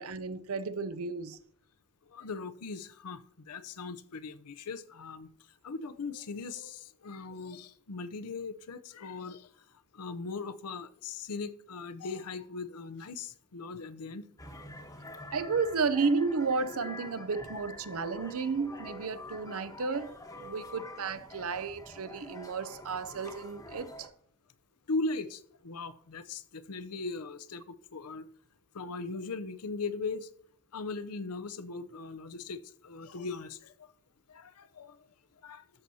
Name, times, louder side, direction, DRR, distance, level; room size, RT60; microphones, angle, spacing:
voice 1, 0.0-1.4 15.3-24.1, right 4 dB, 70° right, 0.6 m, -32 dB
voice 2, 2.1-5.3 5.6-9.5 9.9-14.3 24.9-27.6 27.9-28.2 28.7-30.3 30.7-33.7 34.3-35.0 35.4-35.6, left 3 dB, 90° left, 0.7 m, -39 dB
sound 1, 14.4-24.1, left 1 dB, 15° left, 1.1 m, -46 dB
13.0 x 6.2 x 2.8 m
head